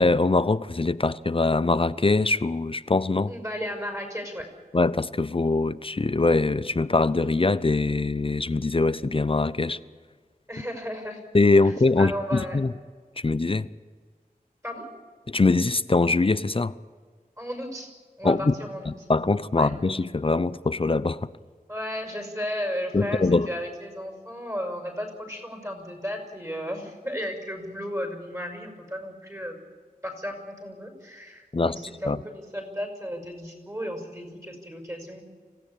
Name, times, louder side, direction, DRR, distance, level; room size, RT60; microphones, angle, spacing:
voice 1, 0.0-3.3 4.7-9.8 11.3-12.7 13.2-13.7 15.3-16.7 18.2-18.5 18.9-21.3 22.9-23.5 31.5-31.8 32.0-32.2, left 3 dB, 35° left, 16 dB, 0.6 m, -23 dB
voice 2, 3.3-4.5 10.5-11.2 11.6-12.6 14.6-14.9 17.4-17.9 18.2-18.9 19.5-19.7 21.7-29.6 30.0-35.2, equal, 20° right, 3 dB, 6.0 m, -34 dB
25.5 x 16.5 x 8.6 m, 1.5 s
wide cardioid pair, 70°, 15 cm